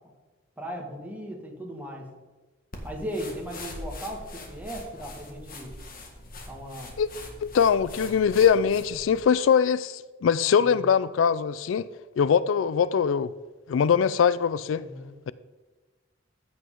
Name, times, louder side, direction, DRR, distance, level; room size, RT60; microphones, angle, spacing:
voice 1, 0.6-2.1 2.8-5.7 6.5-6.9 10.6-10.8 14.7-15.1, equal, 10° right, 1.9 m, -37 dB
sound 1, 2.7-9.2, left 2 dB, 50° left, 1.7 m, -42 dB
voice 2, 7.4-11.9 12.2-13.3 13.7-14.8, left 7 dB, 80° left, 0.4 m, -22 dB
15.0 x 8.1 x 3.8 m
head